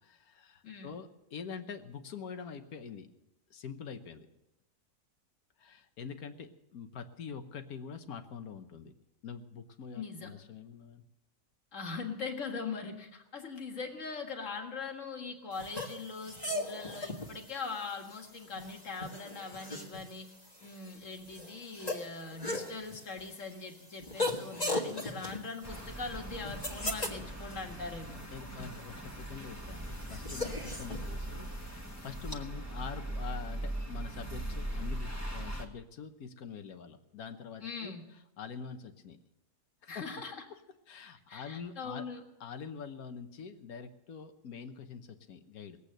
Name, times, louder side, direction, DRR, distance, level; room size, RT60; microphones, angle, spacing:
voice 1, 0.0-3.1 3.5-4.3 5.6-8.9 9.2-11.1 28.3-37.9 38.4-39.2 39.8-40.0 40.9-42.0 42.4-45.8, left 6 dB, 70° left, 8 dB, 1.5 m, -45 dB
voice 2, 0.6-1.0 9.9-10.3 11.7-20.3 20.6-28.2 37.6-38.0 39.9-40.4 41.3-42.2, left 4 dB, 55° left, 3 dB, 2.1 m, -41 dB
sound 1, 15.5-32.4, left 2 dB, 25° left, 1.7 m, -40 dB
sound 2, 25.6-35.7, right 1 dB, 10° left, 1.3 m, -40 dB
20.0 x 8.3 x 6.6 m, 0.93 s
omnidirectional pair, 1.6 m